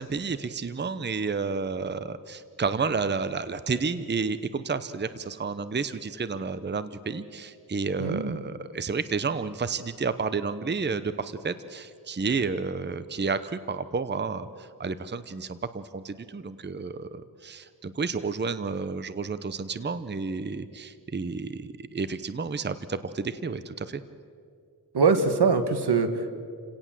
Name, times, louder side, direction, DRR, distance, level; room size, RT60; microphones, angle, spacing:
voice 1, 0.0-24.0, right 4 dB, 25° right, 13 dB, 0.7 m, -31 dB
voice 2, 8.0-8.4 24.9-26.3, right 4 dB, 80° right, 9 dB, 1.7 m, -23 dB
29.0 x 17.5 x 7.5 m, 2.4 s
wide cardioid pair, 105°, 39 cm